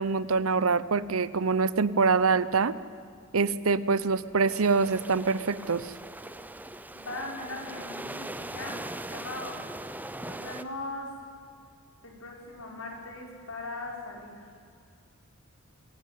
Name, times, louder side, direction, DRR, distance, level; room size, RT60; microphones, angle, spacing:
voice 1, 0.0-2.7 3.3-5.9, right 4 dB, 90° right, 16 dB, 0.8 m, -25 dB
sound 1, 4.5-10.6, right 1 dB, 10° right, 0.7 m, -40 dB
voice 2, 6.9-8.8 9.1-9.6 10.2-11.2 12.0-14.5, left 2 dB, 85° left, 0 dB, 5.2 m, -39 dB
24.5 x 16.5 x 9.4 m, 2.4 s
head